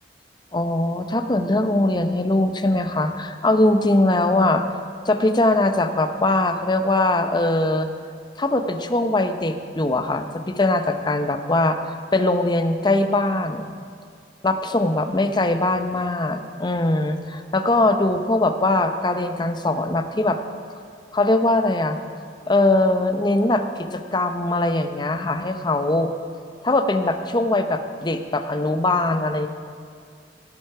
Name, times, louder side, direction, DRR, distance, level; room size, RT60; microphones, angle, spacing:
voice 1, 0.5-4.6 5.0-7.9 8.4-11.8 12.1-13.7 14.4-20.4 21.1-22.0 22.5-26.1 26.6-29.5, left 2 dB, 25° left, 8 dB, 0.7 m, -21 dB
16.5 x 7.8 x 5.7 m, 2.2 s
head